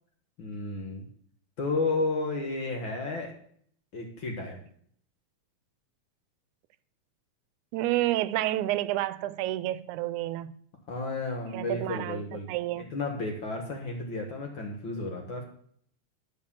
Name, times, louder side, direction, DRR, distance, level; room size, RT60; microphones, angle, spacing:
voice 1, 0.4-1.1 1.6-3.3 3.9-4.6 10.9-12.5 12.7-15.4, left 3 dB, 55° left, 1.5 m, -32 dB
voice 2, 7.7-10.5 11.5-12.2 12.5-12.9, right 15 dB, 85° right, 2.0 m, -29 dB
11.0 x 4.5 x 7.2 m
omnidirectional pair, 3.4 m